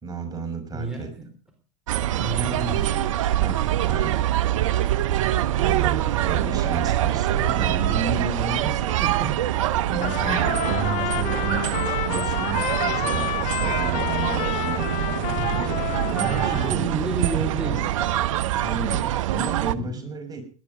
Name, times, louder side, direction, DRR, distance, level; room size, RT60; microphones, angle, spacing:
voice 1, 0.0-1.1 3.4-4.3 5.6-8.9 9.9-16.9 18.6-20.4, right 3 dB, 20° right, 4 dB, 5.9 m, -32 dB
voice 2, 0.7-1.3 2.1-3.2 8.6-9.4 15.4-15.7 16.2-18.2 19.8-20.0, right 3 dB, 5° right, 2 dB, 4.2 m, -31 dB
sound 1, 1.9-19.7, right 13 dB, 70° right, 1.0 m, -24 dB
Trumpet, 10.0-16.8, left 13 dB, 50° left, 2.2 m, -30 dB
18.0 x 12.0 x 5.2 m, 0.38 s
hypercardioid pair, 95°, 17 cm